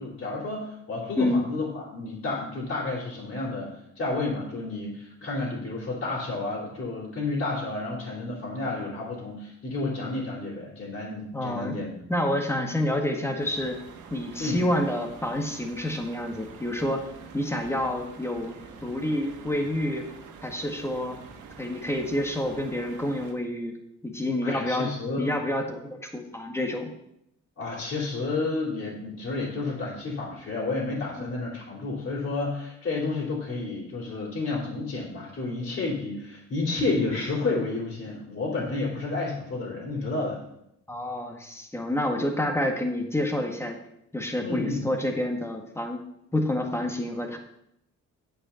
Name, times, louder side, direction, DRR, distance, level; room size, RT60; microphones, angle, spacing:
voice 1, 0.0-12.0 14.4-14.6 24.4-25.3 27.6-40.4 44.4-44.9, left 3 dB, 40° left, -6 dB, 3.4 m, -31 dB
voice 2, 11.3-11.7 12.1-13.8 14.1-17.1 17.3-20.1 20.4-21.2 21.6-23.8 24.0-24.9 25.2-26.9 31.2-31.3 40.9-43.8 44.1-46.0 46.3-47.4, left 1 dB, 10° left, 3 dB, 1.7 m, -28 dB
sound 1, 13.4-23.3, right 5 dB, 75° right, 1.5 m, -46 dB
8.4 x 5.3 x 7.1 m, 0.77 s
cardioid pair, 90°, 30 cm